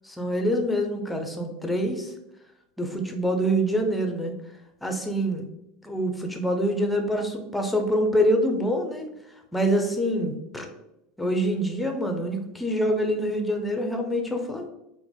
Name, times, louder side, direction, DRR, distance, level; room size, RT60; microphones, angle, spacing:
voice 1, 0.2-2.1 2.8-4.3 4.8-5.4 5.8-9.1 9.5-10.7 11.2-14.7, equal, 5° left, 3 dB, 0.6 m, -25 dB
3.3 x 2.1 x 3.6 m, 0.87 s
supercardioid pair, 115°, 0 cm